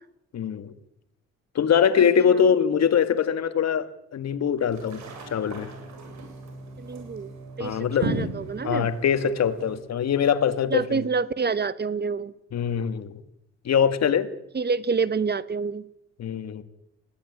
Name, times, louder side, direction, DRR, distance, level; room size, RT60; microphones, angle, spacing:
voice 1, 0.3-0.7 1.6-5.0 5.3-5.7 7.6-8.1 8.6-11.0 12.5-13.1 13.7-14.3 16.2-16.6, left 7 dB, 60° left, 11 dB, 2.0 m, -23 dB
sound 1, 4.6-9.8, right 2 dB, 65° right, 7.8 m, -36 dB
voice 2, 6.8-7.3 7.6-8.9 10.7-12.3 14.5-15.8, right 5 dB, 35° right, 16 dB, 1.2 m, -27 dB
21.0 x 16.5 x 9.9 m, 0.82 s
cardioid pair, 90°, 30 cm